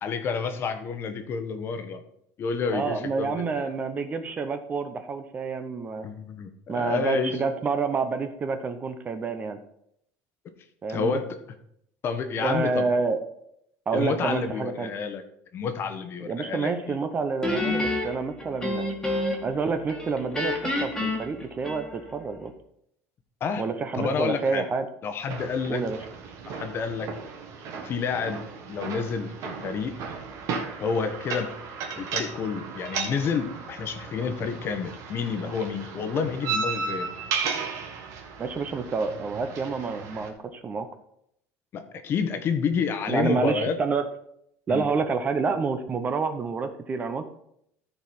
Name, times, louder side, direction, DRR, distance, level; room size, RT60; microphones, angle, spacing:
voice 1, 0.0-2.0 2.4-3.7 6.0-7.4 10.9-11.3 12.0-12.9 13.9-15.2 15.5-17.0 23.4-23.6 23.9-24.6 25.0-25.8 26.5-27.1 27.8-28.4 28.7-30.0 30.8-31.5 32.0-37.1 41.7-43.8 44.7-44.8, left 5 dB, 35° left, 8 dB, 1.1 m, -29 dB
voice 2, 2.7-6.1 6.7-9.6 10.8-11.2 12.4-13.2 13.9-14.9 16.2-18.9 19.4-22.5 23.6-24.9 25.7-26.0 38.4-40.9 43.1-44.1 44.7-47.3, right 4 dB, 25° right, 8 dB, 0.7 m, -28 dB
Guitar, 17.4-19.6 19.9-22.2, left 2 dB, 10° left, 1.8 m, -29 dB
sound 1, 25.3-40.3, right 5 dB, 55° right, 1.7 m, -35 dB
14.0 x 4.7 x 4.4 m, 0.73 s
cardioid pair, 150°, 7 cm